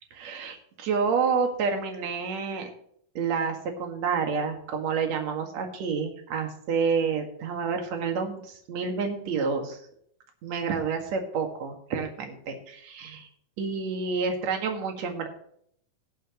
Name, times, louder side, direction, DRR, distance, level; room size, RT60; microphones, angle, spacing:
voice 1, 0.1-2.7 3.1-9.8 10.4-13.3 13.6-15.3, right 5 dB, 55° right, 4 dB, 2.9 m, -29 dB
19.0 x 7.8 x 3.1 m, 0.66 s
omnidirectional pair, 4.1 m